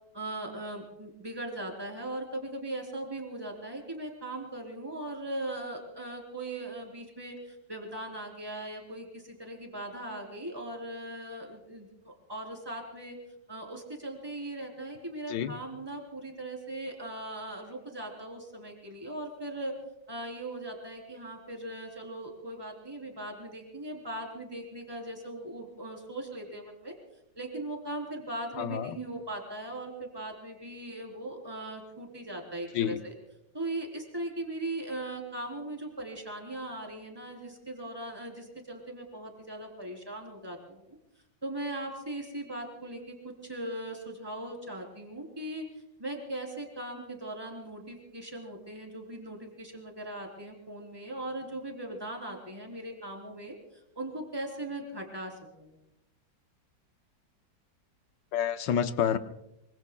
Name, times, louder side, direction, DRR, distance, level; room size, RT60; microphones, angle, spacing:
voice 1, 0.1-13.2 13.5-19.7 20.1-27.0 27.4-33.1 33.5-40.8 41.4-43.2 43.4-45.6 46.0-53.5 54.0-55.3 55.6-55.7, right 1 dB, 10° right, 1 dB, 3.6 m, -39 dB
voice 2, 15.3-15.6 28.5-29.0 32.7-33.0 58.3-59.2, left 8 dB, 75° left, 9 dB, 1.5 m, -29 dB
25.0 x 25.0 x 2.3 m, 0.87 s
omnidirectional pair, 2.0 m